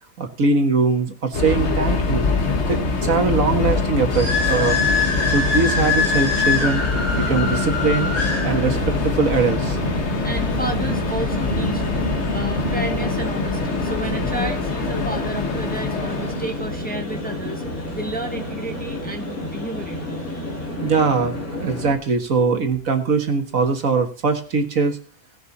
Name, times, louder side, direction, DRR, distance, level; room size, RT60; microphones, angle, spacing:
voice 1, 0.2-2.3 2.7-4.8 5.3-6.8 7.1-8.1 8.4-9.8 20.8-25.0, right 4 dB, 65° right, 5 dB, 1.9 m, -21 dB
Subway metro underground, 1.3-16.7, left 3 dB, 50° left, 1.6 m, -24 dB
sound 1, 4.1-21.9, left 3 dB, 80° left, 4.3 m, -27 dB
sound 2, 7.0-13.2, right 3 dB, 35° right, 1.1 m, -33 dB
voice 2, 10.2-11.8 12.3-17.6 17.9-20.1, right 2 dB, 5° left, 3 dB, 1.4 m, -31 dB
18.5 x 7.0 x 4.1 m, 0.39 s
omnidirectional pair, 1.5 m